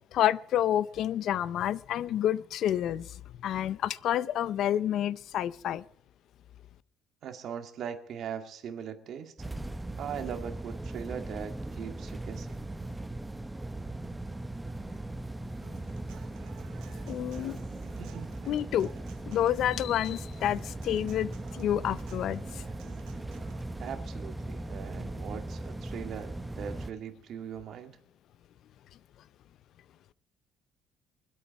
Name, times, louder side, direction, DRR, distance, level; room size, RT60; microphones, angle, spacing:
voice 1, 0.1-5.8 17.1-17.6 18.5-18.9 19.3-22.6, left 11 dB, 65° left, 0.5 m, -29 dB
voice 2, 7.2-9.3 10.0-12.6 16.1-16.3 17.3-17.6 18.0-18.3 23.8-28.0, right 8 dB, 60° right, 2.0 m, -40 dB
sound 1, 9.4-26.9, right 2 dB, 10° right, 0.7 m, -39 dB
Human voice / Acoustic guitar, 15.6-23.6, right 13 dB, 85° right, 1.0 m, -54 dB
24.5 x 8.5 x 4.7 m
cardioid pair, 125°, 0 cm